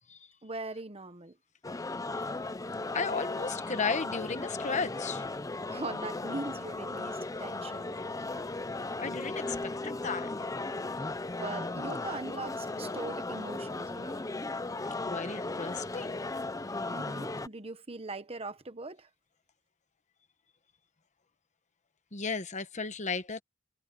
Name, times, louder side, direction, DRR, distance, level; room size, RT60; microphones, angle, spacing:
voice 1, 0.4-1.4 5.7-8.0 11.4-14.2 16.9-19.1, right 3 dB, 30° right, 1.2 m, -41 dB
sound 1, 1.6-17.5, left 2 dB, 20° left, 0.6 m, -36 dB
voice 2, 2.9-5.2 9.0-10.3 15.1-16.3 22.1-23.4, left 4 dB, 40° left, 1.2 m, -34 dB
head